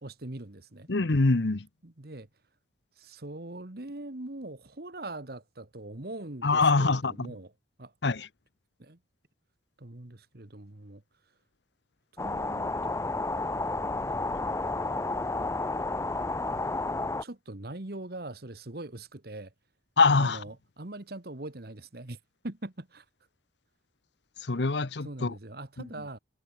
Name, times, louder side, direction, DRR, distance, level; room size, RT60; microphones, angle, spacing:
voice 1, 0.0-0.9 1.8-2.3 3.0-7.5 7.8-7.9 8.8-9.0 9.8-11.0 12.1-13.2 17.2-19.5 20.1-22.2 22.4-23.0 25.0-26.2, right 2 dB, 55° right, 1.5 m, -42 dB
voice 2, 0.9-1.7 6.4-7.3 8.0-8.3 20.0-20.4 24.4-25.3 25.8-25.9, left 3 dB, 70° left, 0.9 m, -24 dB
sound 1, 12.2-17.2, left 2 dB, 15° left, 0.5 m, -31 dB
head